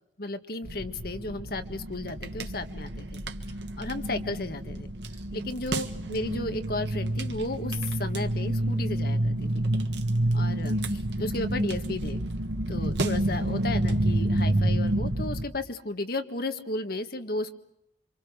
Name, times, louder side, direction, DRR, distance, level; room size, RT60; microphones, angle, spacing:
voice 1, 0.2-3.2 3.8-4.9 5.3-9.7 10.3-12.2 12.7-17.6, left 2 dB, 60° left, 7 dB, 1.7 m, -34 dB
sound 1, 0.6-15.4, right 1 dB, 75° right, 1.6 m, -29 dB
27.0 x 25.5 x 6.6 m, 0.74 s
head